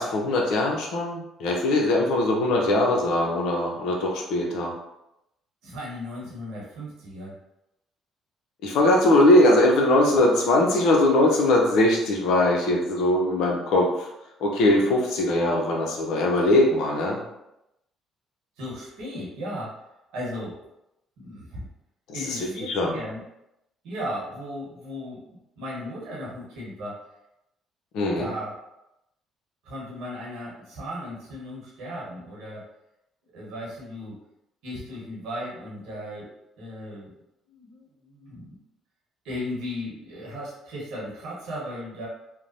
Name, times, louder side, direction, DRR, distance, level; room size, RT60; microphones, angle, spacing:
voice 1, 0.0-4.7 8.6-14.1 14.4-17.2 22.1-23.0 27.9-28.3, left 1 dB, 75° left, -1 dB, 0.6 m, -21 dB
voice 2, 5.6-7.4 18.6-19.8 20.1-20.6 21.2-21.7 22.1-23.2 23.8-25.2 25.6-27.0 28.2-28.6 29.6-32.6 33.3-34.2 34.6-37.1 37.5-38.6 39.2-42.1, equal, 80° right, -5 dB, 1.0 m, -36 dB
3.0 x 2.0 x 2.5 m, 0.87 s
supercardioid pair, 70°, 0 cm